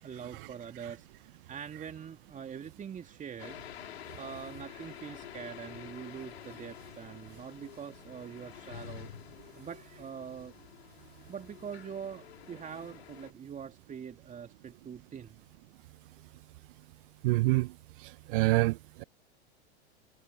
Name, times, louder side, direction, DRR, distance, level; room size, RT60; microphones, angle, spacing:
voice 1, 0.0-9.1 9.5-10.6 11.3-15.4, right 7 dB, 25° right, 2.7 m, -44 dB
sound 1, 3.4-13.3, left 11 dB, 75° left, 3.5 m, -49 dB
voice 2, 17.2-17.7 18.3-19.0, right 21 dB, 55° right, 0.7 m, -26 dB
hypercardioid pair, 95°, 32 cm